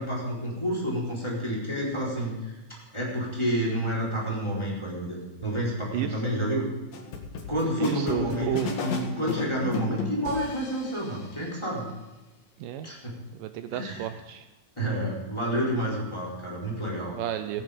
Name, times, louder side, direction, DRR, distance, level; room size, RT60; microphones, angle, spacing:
voice 1, 0.0-2.5 2.9-6.7 7.5-11.9 12.8-13.2 13.7-14.1 14.8-17.1 17.5-17.6, equal, 10° left, -5 dB, 3.8 m, -29 dB
sound 1, 6.9-11.2, left 4 dB, 75° left, 3.4 m, -34 dB
voice 2, 7.8-8.7 12.6-12.9 13.3-14.5 17.1-17.6, right 11 dB, 80° right, 10 dB, 2.1 m, -32 dB
17.5 x 9.4 x 5.2 m, 1.1 s
omnidirectional pair, 4.0 m